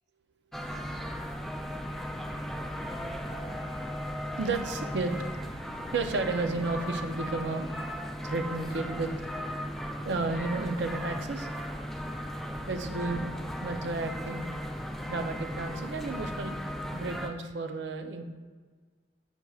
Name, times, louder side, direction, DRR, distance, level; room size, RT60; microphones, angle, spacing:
sound 1, 0.5-17.3, equal, ahead, 0.4 m, -36 dB
sound 2, 1.8-13.1, right 1 dB, 30° left, 1.3 m, -47 dB
voice 1, 4.4-5.1 5.9-7.7 8.2-9.1 10.0-11.5 12.7-13.3 13.6-14.5 15.1-16.6 16.9-18.2, right 3 dB, 75° right, 6 dB, 0.6 m, -32 dB
6.7 x 6.1 x 2.4 m, 1.5 s
head